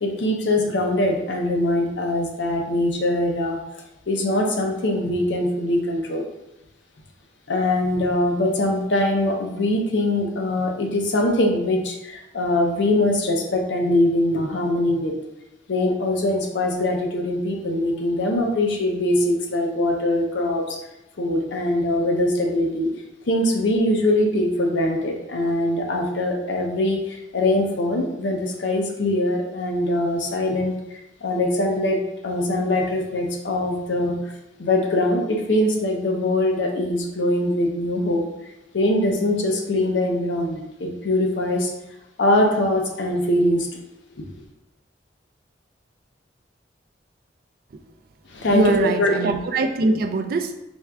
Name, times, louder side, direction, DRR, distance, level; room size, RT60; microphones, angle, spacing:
voice 1, 0.0-3.6 4.1-6.3 7.5-15.1 15.7-20.8 21.2-22.9 23.3-30.8 31.2-34.2 34.6-38.3 38.7-41.7 42.2-43.7 48.3-49.1, left 1 dB, 80° left, 1 dB, 0.7 m, -22 dB
voice 2, 48.5-50.6, right 2 dB, 55° right, 6 dB, 0.3 m, -22 dB
4.4 x 3.3 x 2.3 m, 0.91 s
head